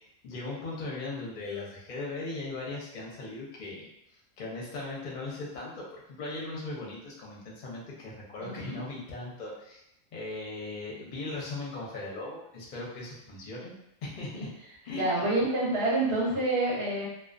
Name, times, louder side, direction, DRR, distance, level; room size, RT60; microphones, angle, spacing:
voice 1, 0.2-3.9 4.4-9.8 10.1-13.7 14.0-14.5 14.8-15.3, left 2 dB, 45° left, -4 dB, 0.6 m, -38 dB
voice 2, 8.4-8.8 14.3-14.5 14.9-17.1, right 2 dB, 55° right, -6 dB, 0.8 m, -28 dB
2.3 x 2.2 x 2.4 m, 0.81 s
omnidirectional pair, 1.5 m